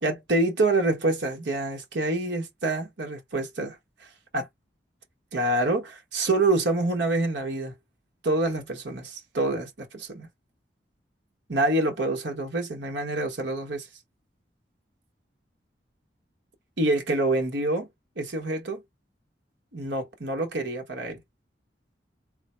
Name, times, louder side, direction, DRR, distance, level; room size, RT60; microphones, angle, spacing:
voice 1, 0.0-3.8 4.3-4.4 5.3-7.7 8.2-10.3 11.5-13.9 16.8-17.9 18.2-18.8 19.7-21.2, right 2 dB, 90° right, 1.2 m, -26 dB
3.8 x 2.1 x 4.4 m
head